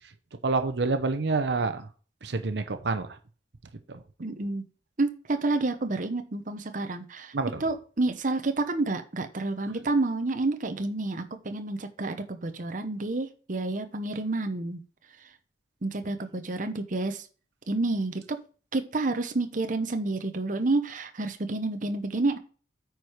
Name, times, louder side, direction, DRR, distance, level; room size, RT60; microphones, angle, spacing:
voice 1, 0.4-1.9 2.2-3.2 3.9-4.0 7.3-7.6, right 3 dB, 80° right, 9 dB, 0.8 m, -27 dB
voice 2, 4.2-4.6 5.0-7.3 7.6-14.8 15.8-17.3 17.7-18.4 18.7-22.4, right 2 dB, 45° right, 7 dB, 0.8 m, -29 dB
9.0 x 4.8 x 4.9 m, 0.38 s
head